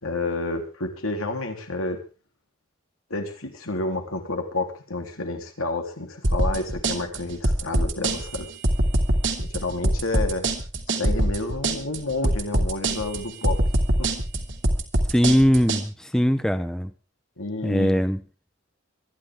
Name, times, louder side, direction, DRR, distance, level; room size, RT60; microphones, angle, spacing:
voice 1, 0.0-2.0 3.1-8.5 9.4-10.5 10.9-13.6 14.0-14.1 17.4-18.0, left 2 dB, 90° left, 3 dB, 3.5 m, -30 dB
sound 1, 6.2-15.8, right 1 dB, 55° right, 2.6 m, -23 dB
voice 2, 15.1-16.9 17.6-18.2, equal, 5° left, 10 dB, 0.7 m, -20 dB
25.0 x 11.0 x 3.7 m, 0.33 s
head